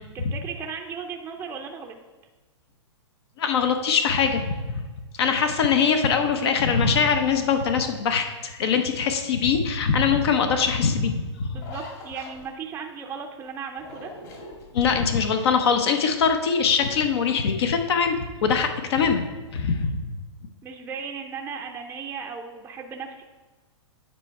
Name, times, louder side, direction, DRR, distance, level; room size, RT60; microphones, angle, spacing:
voice 1, 0.1-2.0 5.4-5.5 11.5-14.1 20.6-23.2, right 6 dB, 15° right, 1 dB, 0.5 m, -36 dB
voice 2, 3.4-4.6 5.2-11.5 14.7-20.0, left 6 dB, 60° left, 6 dB, 0.8 m, -22 dB
sound 1, 11.5-12.8 13.7-15.3 15.7-16.3, left 3 dB, 40° left, 2.2 m, -43 dB
9.1 x 4.4 x 4.6 m, 1.3 s
hypercardioid pair, 125°, 15 cm